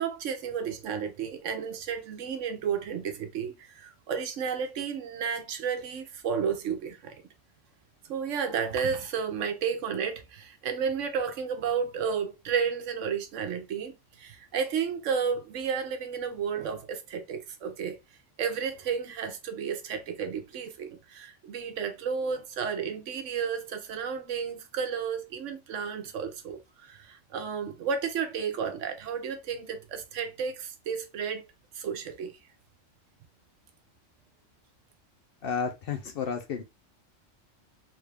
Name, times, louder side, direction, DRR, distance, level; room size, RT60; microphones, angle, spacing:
voice 1, 0.0-7.2 8.1-18.0 18.4-31.5 31.7-32.3, right 6 dB, 75° right, 1.0 m, -32 dB
voice 2, 35.4-36.6, left 6 dB, 60° left, 0.7 m, -31 dB
3.5 x 2.4 x 3.2 m
omnidirectional pair, 1.3 m